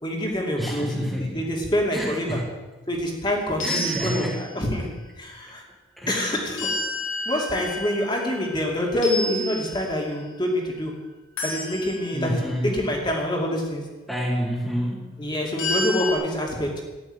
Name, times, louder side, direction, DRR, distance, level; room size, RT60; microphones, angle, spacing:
voice 1, 0.0-2.4 2.9-5.6 6.1-6.8 7.3-11.1 11.4-13.8 15.2-16.8, left 1 dB, 20° left, 0 dB, 2.6 m, -26 dB
voice 2, 0.6-1.6 1.9-2.5 3.6-4.4 6.0-6.4 12.1-12.9 14.1-15.2, equal, ahead, -4 dB, 2.0 m, -29 dB
sound 1, 3.6-4.8 6.6-8.6 9.0-10.3 11.4-12.4 15.6-16.1, left 1 dB, 85° left, 4.6 m, -30 dB
13.5 x 10.5 x 8.2 m, 1.2 s
head